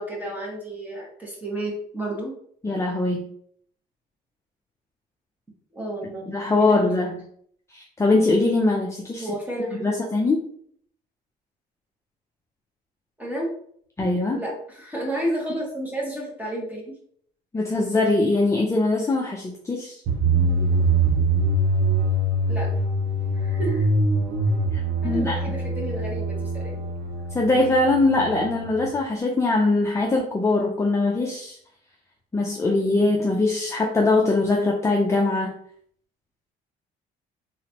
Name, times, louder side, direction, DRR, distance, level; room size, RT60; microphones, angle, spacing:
voice 1, 0.0-2.3 5.7-6.3 6.6-7.1 9.2-10.1 13.2-13.5 14.3-16.9 22.5-22.7 23.3-23.9 25.0-26.8, right 1 dB, 10° right, -3 dB, 1.6 m, -31 dB
voice 2, 2.6-3.3 6.3-7.2 7.7-9.3 9.7-10.4 14.0-14.4 17.5-20.0 24.7-25.5 27.3-31.6 32.3-35.5, left 2 dB, 15° left, -1 dB, 0.5 m, -22 dB
sound 1, 20.1-28.9, right 2 dB, 65° right, 1.0 m, -23 dB
3.9 x 3.2 x 2.9 m, 0.63 s
cardioid pair, 110°, 17 cm